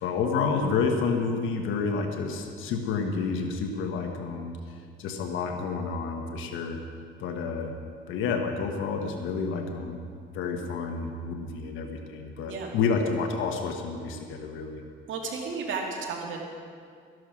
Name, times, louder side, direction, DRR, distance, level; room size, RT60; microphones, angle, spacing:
voice 1, 0.0-6.8 7.2-7.7 8.1-10.0 10.3-14.8, left 5 dB, 90° left, 4 dB, 1.3 m, -29 dB
voice 2, 15.1-16.4, right 4 dB, 75° right, -1 dB, 2.6 m, -33 dB
13.5 x 11.0 x 6.3 m, 2.2 s
cardioid pair, 90°, 20 cm